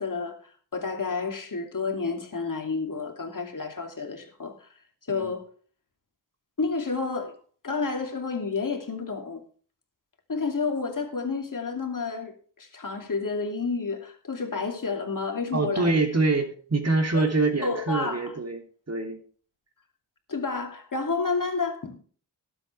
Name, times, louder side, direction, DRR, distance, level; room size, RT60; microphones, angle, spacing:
voice 1, 0.0-4.7 5.1-5.5 6.6-7.4 7.6-9.4 10.3-15.9 17.1-17.2 17.6-18.3 20.3-22.0, left 4 dB, 45° left, 2.7 m, -30 dB
voice 2, 15.5-19.2, right 3 dB, 35° right, 3.0 m, -25 dB
19.5 x 8.0 x 3.3 m
wide cardioid pair, 90°, 43 cm